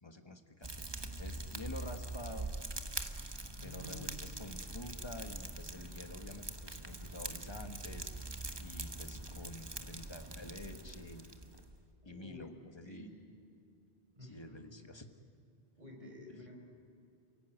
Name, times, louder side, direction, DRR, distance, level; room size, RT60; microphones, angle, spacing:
voice 1, 0.0-2.5 3.6-8.3 8.6-11.3 12.0-13.1 14.2-15.0, left 2 dB, 25° left, 6 dB, 1.5 m, -49 dB
Fire, 0.6-11.8, right 2 dB, 25° right, 1.2 m, -43 dB
voice 2, 3.6-4.2 12.0-12.5 12.8-13.1 14.1-14.6 15.8-16.5, left 1 dB, 40° right, 0 dB, 5.2 m, -50 dB
29.0 x 17.0 x 9.2 m, 2.5 s
omnidirectional pair, 1.1 m